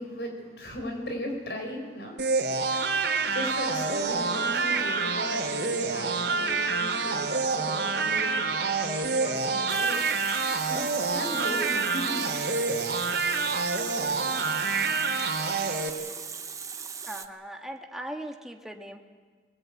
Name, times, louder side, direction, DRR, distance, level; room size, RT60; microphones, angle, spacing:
voice 1, 0.0-10.8 11.1-12.2 13.0-13.1, equal, 75° left, 3 dB, 5.5 m, -37 dB
sound 1, 2.2-15.9, right 4 dB, 75° right, 3.1 m, -27 dB
Water tap faucet, 9.7-17.3, right 6 dB, 20° right, 0.8 m, -39 dB
voice 2, 17.1-19.0, right 1 dB, ahead, 2 dB, 1.7 m, -39 dB
22.5 x 21.0 x 9.1 m, 1.5 s
head